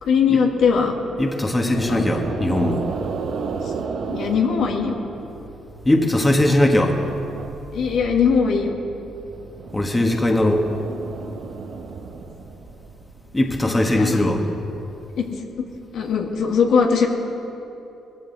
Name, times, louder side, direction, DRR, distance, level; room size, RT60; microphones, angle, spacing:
voice 1, 0.0-0.9 1.9-2.1 4.1-5.0 7.7-8.7 13.7-14.2 15.2-15.7 15.9-17.1, left 6 dB, 75° left, 1 dB, 1.7 m, -20 dB
voice 2, 1.2-2.9 5.8-7.0 9.7-10.7 13.3-14.4, left 1 dB, 15° left, 2 dB, 1.5 m, -19 dB
sound 1, 1.7-5.4 5.8-8.1 8.5-13.3, right 5 dB, 65° right, 1.0 m, -33 dB
19.5 x 14.5 x 4.0 m, 3.0 s
cardioid pair, 90°, 0 cm